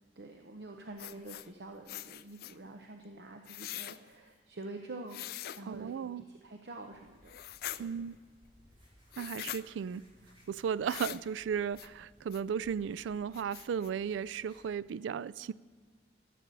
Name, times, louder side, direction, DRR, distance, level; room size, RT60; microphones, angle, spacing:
voice 1, 0.2-5.2 5.6-7.4 7.8-7.9, right 2 dB, 65° right, 3 dB, 0.8 m, -47 dB
sound 1, 1.0-1.5 1.9-2.6 3.5-4.0 5.1-5.6 7.3-7.8 9.1-9.6 10.9-11.2 11.8-11.9 12.3-12.4 12.9-13.0 13.3-13.9, left 12 dB, 55° left, 0.3 m, -42 dB
voice 2, 5.7-6.2 7.8-8.2 9.2-10.0 10.5-15.5, right 7 dB, 90° right, 20 dB, 0.3 m, -35 dB
sound 2, 6.8-14.7, equal, 25° right, 3.3 m, -63 dB
13.5 x 6.7 x 7.5 m, 1.4 s
head